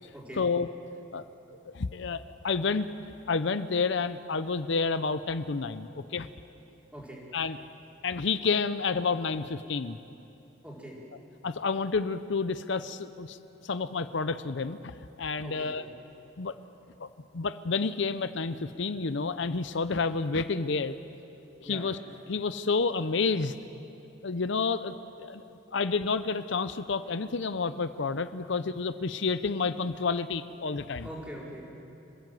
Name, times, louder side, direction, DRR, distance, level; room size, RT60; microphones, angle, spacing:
voice 1, 0.4-0.7 1.1-1.2 1.7-2.9 3.3-6.3 7.3-7.7 8.0-10.0 11.4-13.4 13.6-15.8 16.4-16.6 17.0-17.1 17.3-20.9 21.6-22.0 22.3-23.5 24.2-31.1, left 4 dB, 70° left, 12 dB, 0.7 m, -30 dB
voice 2, 6.9-7.2 10.6-11.0 15.4-15.9 21.6-21.8 31.0-31.6, equal, 5° right, -4 dB, 4.4 m, -42 dB
27.5 x 15.5 x 7.8 m, 2.9 s
head